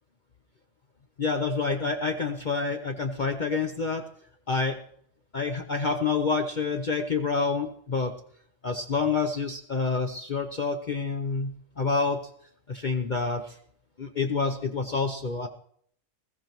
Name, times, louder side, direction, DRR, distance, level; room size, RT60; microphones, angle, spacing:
voice 1, 1.2-4.0 4.5-4.8 5.3-8.1 8.6-12.2 12.7-13.5 14.0-15.5, left 4 dB, 40° left, 4 dB, 0.9 m, -28 dB
20.5 x 15.0 x 3.1 m, 0.62 s
omnidirectional pair, 1.3 m